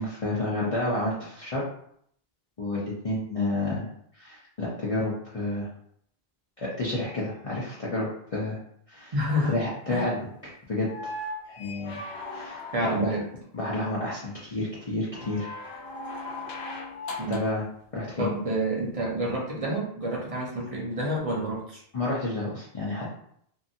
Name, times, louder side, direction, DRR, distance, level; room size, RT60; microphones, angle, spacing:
voice 1, 0.0-1.7 2.6-3.9 4.2-5.7 6.6-8.6 8.9-9.1 9.4-10.2 10.4-10.9 11.5-12.0 12.3-13.1 13.5-15.5 17.3-17.6 17.9-18.3 21.9-23.2, left 2 dB, 40° left, -7 dB, 0.6 m, -30 dB
voice 2, 9.1-9.6 9.9-10.0 12.7-13.2 17.2-17.4 18.2-21.8, right 1 dB, 40° right, -3 dB, 0.7 m, -28 dB
sound 1, 10.8-13.3 15.1-17.6 19.3-19.4, left 2 dB, 75° left, 0.8 m, -38 dB
2.7 x 2.6 x 2.6 m, 0.67 s
omnidirectional pair, 1.1 m